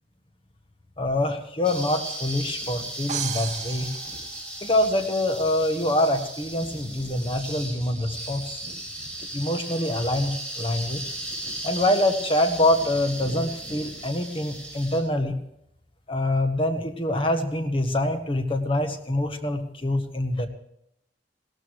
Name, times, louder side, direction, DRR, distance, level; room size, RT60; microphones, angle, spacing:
voice 1, 1.0-3.9 4.6-8.6 9.3-11.0 11.6-15.3 16.1-20.5, left 1 dB, 30° left, 6 dB, 1.6 m, -25 dB
sound 1, 1.6-15.0, right 1 dB, 5° left, 4.5 m, -36 dB
sound 2, 3.1-5.1, right 9 dB, 40° right, 0.5 m, -34 dB
16.5 x 13.0 x 4.8 m, 0.76 s
head